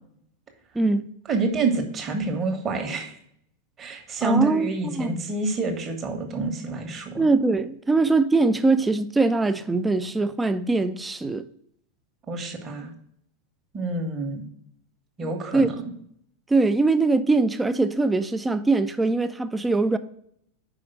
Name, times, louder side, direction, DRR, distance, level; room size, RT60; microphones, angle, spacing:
voice 1, 1.3-3.2 3.8-7.3 12.3-12.9 13.7-14.5 15.2-15.8, right 3 dB, 25° right, 1.2 m, -27 dB
voice 2, 4.2-5.2 7.2-11.4 15.2-15.7 16.5-20.0, right 3 dB, 10° right, 0.4 m, -22 dB
5.0 x 4.9 x 5.7 m
figure-of-eight pair, 90°, 0 cm